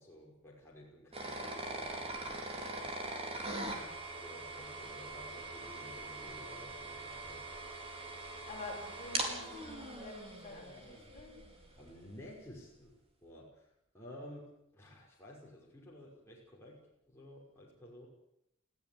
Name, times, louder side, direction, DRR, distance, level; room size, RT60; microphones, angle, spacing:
voice 1, 0.0-2.9 3.5-3.9 4.2-7.4 11.8-12.9 13.2-16.8 17.1-18.1, left 1 dB, 10° left, -4 dB, 5.6 m, -53 dB
sound 1, 1.1-11.9, right 2 dB, 30° right, 4.6 m, -42 dB
voice 2, 8.5-11.3, left 2 dB, 35° left, 1 dB, 6.5 m, -48 dB
21.0 x 16.0 x 8.8 m, 0.80 s
head